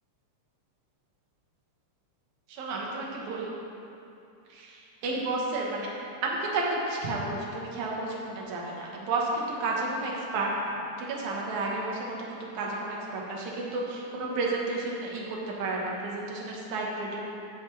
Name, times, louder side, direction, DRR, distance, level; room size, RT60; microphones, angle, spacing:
voice 1, 2.5-3.5 4.5-5.9 6.2-17.3, right 2 dB, 65° right, -3 dB, 2.7 m, -32 dB
16.0 x 5.4 x 4.7 m, 2.7 s
omnidirectional pair, 3.7 m